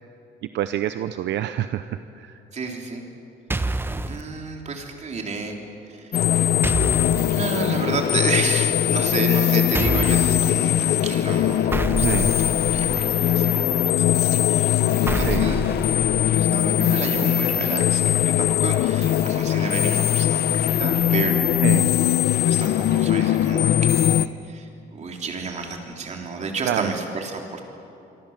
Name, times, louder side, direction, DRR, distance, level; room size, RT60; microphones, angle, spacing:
voice 1, 0.5-1.8 2.2-2.3 12.0-12.3 15.2-15.5 21.6-21.9 26.6-26.9, right 12 dB, 70° right, 10 dB, 0.8 m, -26 dB
voice 2, 2.5-3.0 4.0-5.6 7.3-12.4 12.7-15.6 16.3-21.7 22.4-27.6, right 4 dB, 40° right, 2 dB, 3.6 m, -30 dB
sound 1, 3.5-4.2 6.6-7.3 9.7-10.5 11.7-13.1 15.1-16.5, right 2 dB, 10° right, 0.9 m, -27 dB
sound 2, 6.1-24.3, left 11 dB, 60° left, 0.7 m, -21 dB
25.5 x 25.0 x 7.5 m, 2.7 s
cardioid pair, 145°, 19 cm